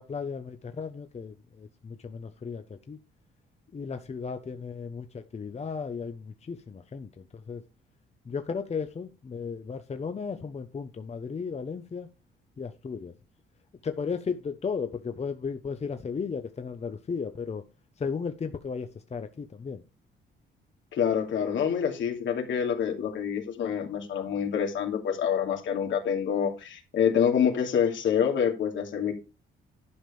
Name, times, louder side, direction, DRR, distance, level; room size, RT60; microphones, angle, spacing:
voice 1, 0.0-3.0 3.7-7.6 8.2-12.1 12.6-13.2 13.8-17.6 18.0-19.8, left 5 dB, 35° left, 1.0 m, -35 dB
voice 2, 20.9-29.1, left 8 dB, 75° left, 2.7 m, -27 dB
11.5 x 5.2 x 5.0 m
cardioid pair, 90°, 20 cm